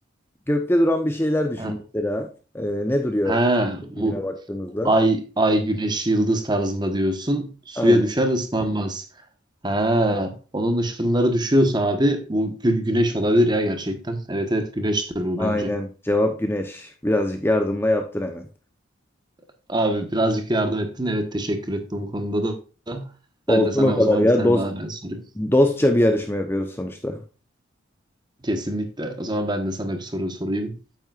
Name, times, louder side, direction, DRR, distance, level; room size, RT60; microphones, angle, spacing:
voice 1, 0.5-2.3 2.5-3.4 4.0-4.9 7.8-8.0 15.4-18.5 23.5-24.7 25.4-27.2, left 1 dB, 10° left, 5 dB, 0.7 m, -22 dB
voice 2, 3.3-4.2 4.8-9.0 9.6-15.7 19.7-22.6 22.9-23.1 23.5-25.2 28.4-30.7, right 1 dB, 20° right, 7 dB, 1.2 m, -23 dB
9.0 x 8.7 x 2.4 m, 0.34 s
head